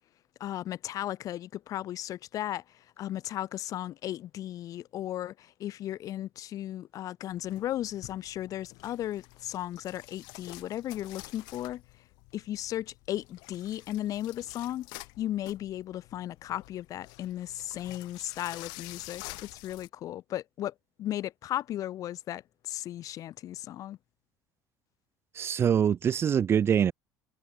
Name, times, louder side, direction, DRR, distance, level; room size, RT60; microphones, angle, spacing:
voice 1, 0.4-2.6 3.0-11.8 12.3-14.9 15.2-19.2 19.5-20.7 21.0-24.0, left 13 dB, 50° left, 0.5 m, -35 dB
sound 1, 7.3-19.9, left 27 dB, 75° left, 7.1 m, -49 dB
voice 2, 25.3-26.9, right 8 dB, 35° right, 0.4 m, -24 dB
supercardioid pair, 95°, 7 cm